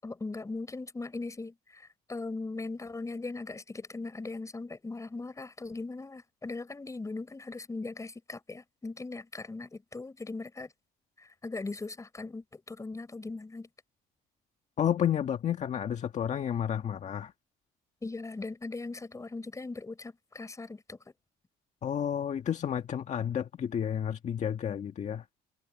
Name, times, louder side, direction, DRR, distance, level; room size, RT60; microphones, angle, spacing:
voice 1, 0.0-10.7 11.2-13.7 18.0-21.0, left 3 dB, 20° left, 5.6 m, -39 dB
voice 2, 14.8-17.3 21.8-25.2, left 9 dB, 45° left, 1.6 m, -31 dB
cardioid pair, 110°, 17 cm